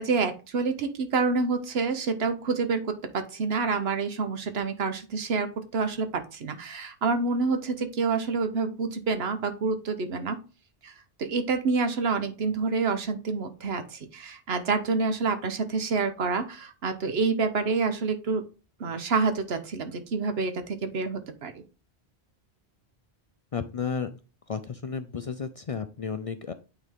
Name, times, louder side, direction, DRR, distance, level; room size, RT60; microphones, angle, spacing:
voice 1, 0.0-10.4 10.8-10.9 11.2-18.4 18.8-21.6, right 4 dB, 70° right, 8 dB, 1.1 m, -28 dB
voice 2, 23.5-24.2 24.5-26.5, left 6 dB, 50° left, 9 dB, 0.4 m, -33 dB
9.1 x 3.9 x 3.6 m, 0.33 s
omnidirectional pair, 1.1 m